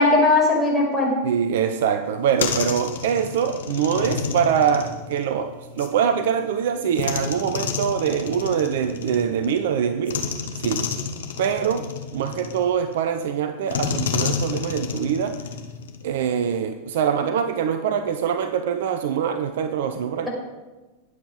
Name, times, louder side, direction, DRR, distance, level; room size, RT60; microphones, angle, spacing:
voice 1, 0.0-1.1, left 2 dB, 5° right, -2 dB, 6.1 m, -18 dB
voice 2, 1.2-10.2 10.6-10.8 11.4-11.9 12.1-15.4 16.0-20.3, right 8 dB, 55° right, 10 dB, 0.8 m, -24 dB
sound 1, 2.1-5.9 7.0-9.6 10.1-13.0 13.7-16.1, left 6 dB, 60° left, 1.6 m, -30 dB
21.0 x 8.3 x 5.1 m, 1.2 s
figure-of-eight pair, 90°, 0 cm